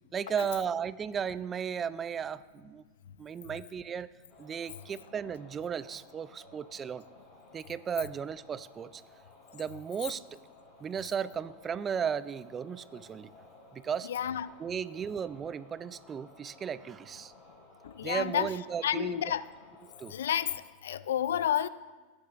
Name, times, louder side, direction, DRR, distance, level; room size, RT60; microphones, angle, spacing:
voice 1, 0.1-2.8 3.2-4.1 4.4-7.0 7.5-9.0 9.5-10.4 10.8-13.3 13.7-14.1 14.6-17.3 18.0-19.2 20.0-20.1, right 7 dB, 25° right, 17 dB, 0.3 m, -35 dB
sound 1, 4.3-20.6, left 1 dB, 30° left, 3.7 m, -57 dB
voice 2, 14.1-14.5 17.8-18.5 18.8-19.4 20.1-21.7, left 10 dB, 85° left, 17 dB, 0.3 m, -30 dB
18.5 x 9.6 x 2.5 m, 1.3 s
hypercardioid pair, 115°, 0 cm